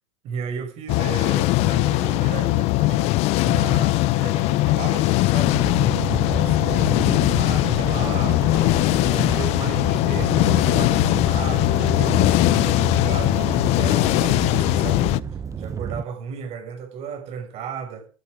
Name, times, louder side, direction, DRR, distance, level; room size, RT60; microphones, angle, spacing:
voice 1, 0.2-5.6 6.3-8.6 9.0-15.1 15.5-18.1, right 7 dB, 40° right, 5.9 m, -34 dB
sound 1, 0.9-15.2, left 19 dB, 40° left, 0.6 m, -20 dB
sound 2, 5.5-16.0, right 7 dB, 20° right, 1.0 m, -31 dB
16.0 x 11.5 x 5.0 m
supercardioid pair, 125°, 16 cm